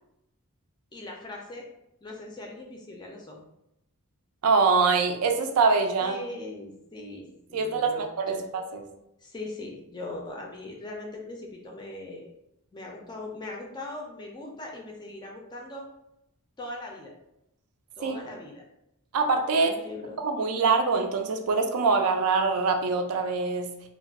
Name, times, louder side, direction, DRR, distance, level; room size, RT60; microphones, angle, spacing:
voice 1, 0.9-1.7 2.0-3.4 6.0-8.5 9.2-12.3 12.7-15.9 16.6-17.1 18.0-18.6 19.5-20.2, left 2 dB, 20° left, 0 dB, 0.4 m, -40 dB
voice 2, 4.4-6.2 7.5-8.8 18.0-18.2 19.1-19.8 20.2-23.7, right 4 dB, 75° right, 5 dB, 0.4 m, -24 dB
2.3 x 2.1 x 3.4 m, 0.83 s
head